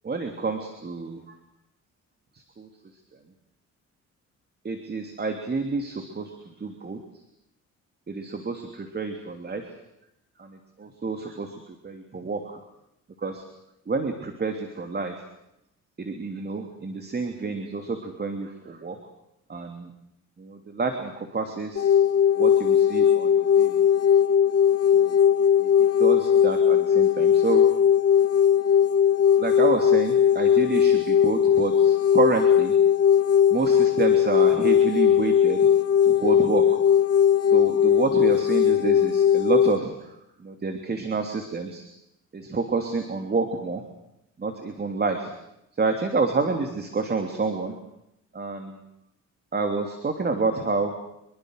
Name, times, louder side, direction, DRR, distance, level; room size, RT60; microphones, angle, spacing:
voice 1, 0.0-1.4 2.3-2.7 4.6-7.0 8.1-9.7 10.4-12.6 13.2-13.5 13.9-15.2 16.0-19.0 19.5-19.9 20.4-22.0 22.3-23.9 24.9-25.2 25.6-25.7 26.0-27.6 29.4-32.8 33.5-35.7 36.0-36.8 37.5-41.8 42.3-43.8 44.4-45.3 45.7-47.7 48.3-48.8 49.5-50.9, right 4 dB, 35° right, 5 dB, 3.1 m, -29 dB
sound 1, 21.8-39.8, left 8 dB, 55° left, 1.6 m, -19 dB
25.5 x 23.0 x 6.6 m, 0.82 s
cardioid pair, 90°, 30 cm